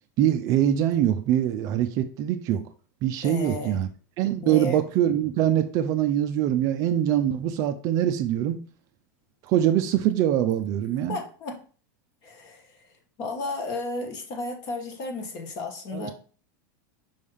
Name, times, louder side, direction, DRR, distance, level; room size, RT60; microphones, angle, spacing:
voice 1, 0.2-2.6 3.0-3.9 4.2-8.6 9.5-11.2 15.9-16.1, right 11 dB, 30° right, 0.4 m, -23 dB
voice 2, 3.2-3.8 4.4-4.8 11.1-11.6 12.2-12.7 13.2-16.1, left 2 dB, 35° left, 1.3 m, -33 dB
5.5 x 3.4 x 5.4 m
supercardioid pair, 165°, 11 cm